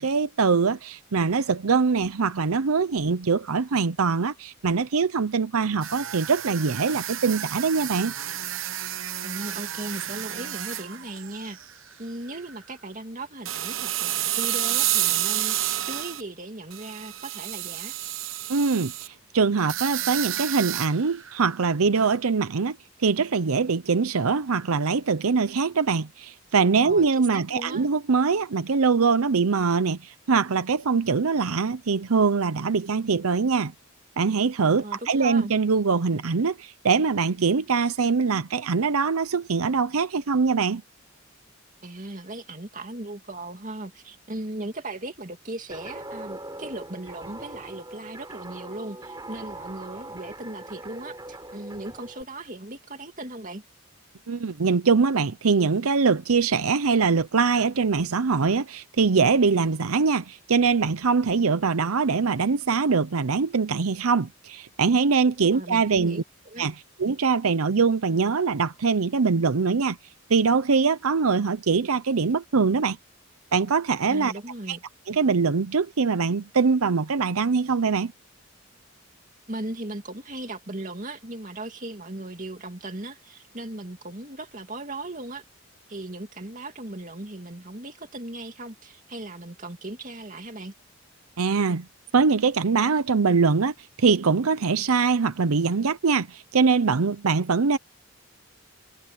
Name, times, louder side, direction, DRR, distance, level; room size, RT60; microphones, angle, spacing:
voice 1, 0.0-8.1 18.5-22.8 23.0-33.7 34.2-40.8 54.3-66.2 66.6-70.0 70.3-73.0 73.5-74.3 74.7-74.8 75.1-78.1 91.4-91.9 92.1-97.8, right 5 dB, 85° right, 0.7 m, -23 dB
sound 1, 5.8-11.9 12.3-12.6 13.5-16.2 16.7-19.1 19.6-21.6 22.0-22.2, right 13 dB, 65° right, 1.0 m, -30 dB
voice 2, 9.2-11.6 12.0-17.9 26.8-27.9 34.8-35.5 41.8-53.6 65.4-66.7 74.1-74.8 79.5-85.4 85.9-90.7, right 2 dB, 35° right, 2.5 m, -37 dB
Guitar, 45.7-52.2, right 1 dB, 20° right, 4.7 m, -41 dB
head